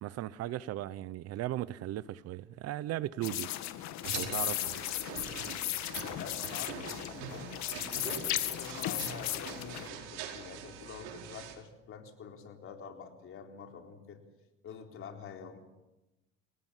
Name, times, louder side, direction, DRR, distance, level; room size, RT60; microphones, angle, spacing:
voice 1, 0.0-3.5 4.2-4.7, right 14 dB, 55° right, 0.9 m, -37 dB
sound 1, 3.2-9.9, left 14 dB, 65° left, 2.1 m, -36 dB
sound 2, 4.0-11.5, right 8 dB, 85° right, 5.0 m, -44 dB
voice 2, 5.2-5.8 6.2-7.5 7.9-14.2 14.6-15.6, left 6 dB, 45° left, 4.1 m, -47 dB
29.0 x 18.0 x 7.5 m
cardioid pair, 120°, 30 cm